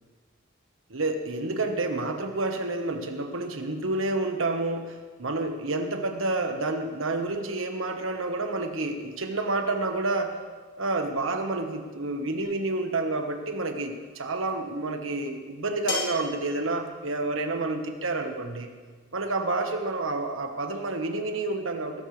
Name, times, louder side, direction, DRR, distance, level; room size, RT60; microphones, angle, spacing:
voice 1, 0.9-10.4 10.8-18.7 19.1-22.0, right 2 dB, 85° right, 5 dB, 1.4 m, -29 dB
sound 1, 12.4-12.7 14.3-14.4 15.9-16.3, left 4 dB, 70° left, 3.7 m, -33 dB
20.0 x 12.0 x 3.3 m, 1.4 s
head